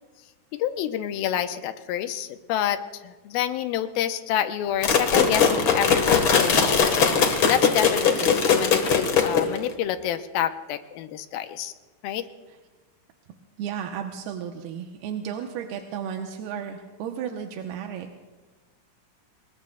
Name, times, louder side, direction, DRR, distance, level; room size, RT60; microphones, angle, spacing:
voice 1, 0.5-11.7 12.0-12.3, left 10 dB, 80° left, 9 dB, 2.5 m, -28 dB
sound 1, 4.8-9.7, left 6 dB, 55° left, 1.4 m, -20 dB
voice 2, 13.6-18.2, right 8 dB, 85° right, 3 dB, 2.9 m, -33 dB
28.0 x 20.0 x 2.3 m, 1.3 s
omnidirectional pair, 4.4 m